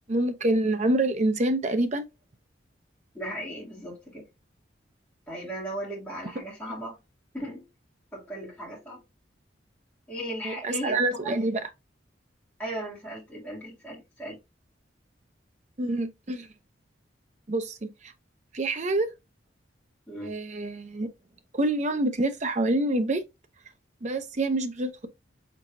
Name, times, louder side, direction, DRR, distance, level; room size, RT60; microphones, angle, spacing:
voice 1, 0.1-2.0 10.4-11.6 15.8-16.5 17.5-17.9 18.5-19.1 20.2-21.1 21.5-23.2 24.0-25.1, right 2 dB, 40° right, 0.6 m, -26 dB
voice 2, 3.1-4.2 5.3-7.0 7.3-7.6 8.1-9.0 10.1-11.0 11.2-11.4 12.6-14.4 20.1-20.3, equal, 10° left, 2.3 m, -36 dB
4.6 x 3.7 x 2.6 m
head